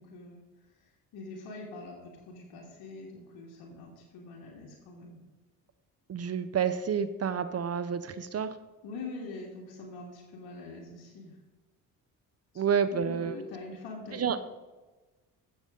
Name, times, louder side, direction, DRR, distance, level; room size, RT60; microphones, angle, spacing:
voice 1, 0.0-5.2 8.8-11.4 12.9-14.4, left 3 dB, 70° left, -2 dB, 2.1 m, -44 dB
voice 2, 6.1-8.6 12.6-13.4 14.1-14.4, right 7 dB, 40° right, 12 dB, 0.7 m, -29 dB
15.0 x 7.0 x 3.8 m, 1.2 s
supercardioid pair, 70°, 38 cm